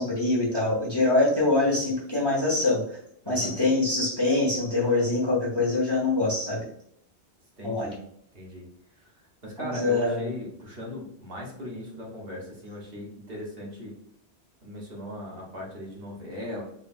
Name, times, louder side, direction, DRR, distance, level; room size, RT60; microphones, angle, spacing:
voice 1, 0.0-2.8 3.3-6.7 7.6-7.9 9.6-10.2, left 2 dB, 25° left, -4 dB, 1.0 m, -24 dB
voice 2, 3.2-3.6 7.6-8.0 8.3-8.6 8.9-13.9 14.6-16.6, equal, 55° right, -3 dB, 1.3 m, -38 dB
3.9 x 3.2 x 2.5 m, 0.68 s
omnidirectional pair, 1.1 m